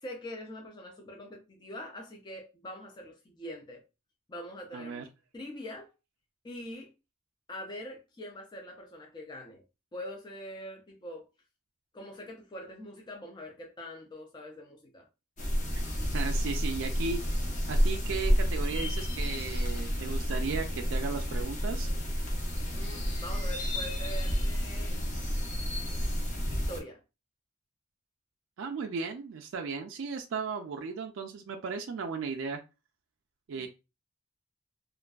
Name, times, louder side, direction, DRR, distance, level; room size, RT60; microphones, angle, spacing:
voice 1, 0.0-3.8 4.3-5.1 5.3-5.9 6.4-6.9 7.5-9.6 9.9-11.3 11.9-15.1 22.7-25.0 26.5-27.0 33.5-33.7, left 1 dB, 20° left, 0.4 m, -43 dB
voice 2, 4.7-5.0 16.0-17.2 17.7-21.9 28.6-32.6 33.5-33.7, right 5 dB, 70° right, 0.3 m, -36 dB
sound 1, 15.4-26.8, equal, 40° left, 0.7 m, -30 dB
2.5 x 2.3 x 2.2 m
head